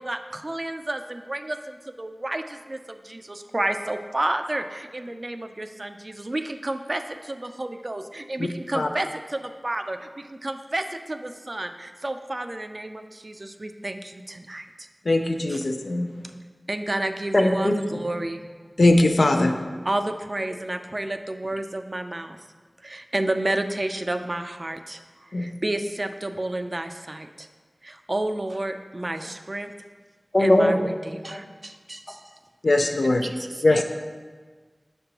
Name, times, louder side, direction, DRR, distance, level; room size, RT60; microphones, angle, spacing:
voice 1, 0.0-14.9 15.5-15.6 16.7-18.4 19.9-22.4 22.8-25.0 25.4-27.5 27.8-29.7 30.4-32.2 33.2-33.8, right 1 dB, 45° right, 7 dB, 0.3 m, -31 dB
voice 2, 15.1-16.1 18.8-19.7 25.3-25.5 32.6-33.2 33.6-33.8, left 2 dB, 75° left, 4 dB, 0.4 m, -20 dB
voice 3, 17.3-18.0 30.3-30.8 31.3-31.4, left 1 dB, 40° left, 2 dB, 0.7 m, -19 dB
6.4 x 5.2 x 2.9 m, 1.4 s
wide cardioid pair, 40°, 0 cm